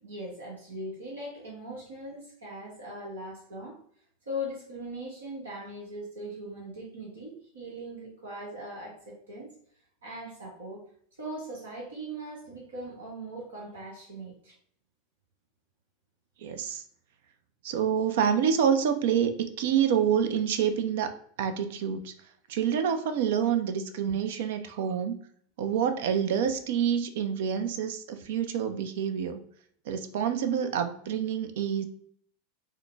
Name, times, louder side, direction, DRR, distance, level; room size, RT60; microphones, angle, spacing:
voice 1, 0.0-3.8 4.3-9.5 10.0-10.8 11.2-14.5, equal, 80° right, -4 dB, 1.1 m, -40 dB
voice 2, 16.4-16.8 17.6-21.1 21.4-22.1 22.5-25.2 25.6-29.4 29.9-31.8, right 8 dB, 65° right, 8 dB, 0.4 m, -27 dB
3.7 x 2.1 x 3.3 m, 0.63 s
hypercardioid pair, 90°, 0 cm